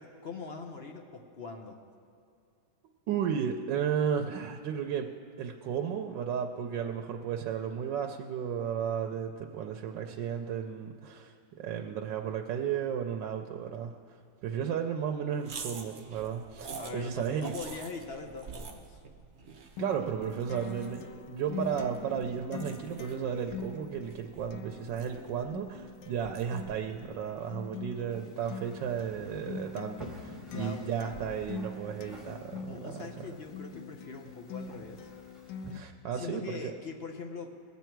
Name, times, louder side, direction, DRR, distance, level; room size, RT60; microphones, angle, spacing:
voice 1, 0.0-1.8 16.8-19.0 30.4-30.9 32.5-35.1 36.1-37.7, left 4 dB, 60° left, 3 dB, 0.6 m, -42 dB
voice 2, 3.1-5.1 5.4-14.2 14.4-17.5 19.8-32.9 35.7-36.7, right 8 dB, 75° right, 4 dB, 1.3 m, -34 dB
sound 1, 15.4-27.9, right 5 dB, 55° right, 0.5 m, -48 dB
Acoustic guitar, 19.8-35.8, left 4 dB, 80° left, 1.3 m, -43 dB
sound 2, 28.1-35.7, right 1 dB, ahead, 1.2 m, -51 dB
20.0 x 8.3 x 4.5 m, 2.4 s
omnidirectional pair, 2.0 m